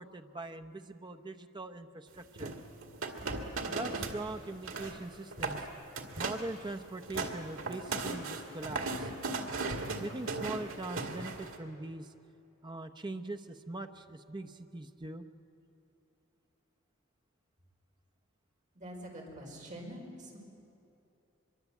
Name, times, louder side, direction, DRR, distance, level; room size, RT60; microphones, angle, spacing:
voice 1, 0.0-2.5 3.7-5.7 6.2-9.1 10.0-12.1 12.6-15.2, right 2 dB, 20° right, 6 dB, 0.8 m, -42 dB
sound 1, 2.4-4.2 4.5-5.0 5.3-5.6 6.0-6.5 6.9-11.6, right 3 dB, 85° right, 2.3 m, -37 dB
voice 2, 18.7-20.4, equal, 40° right, -1 dB, 5.2 m, -45 dB
24.5 x 23.0 x 8.3 m, 2.9 s
head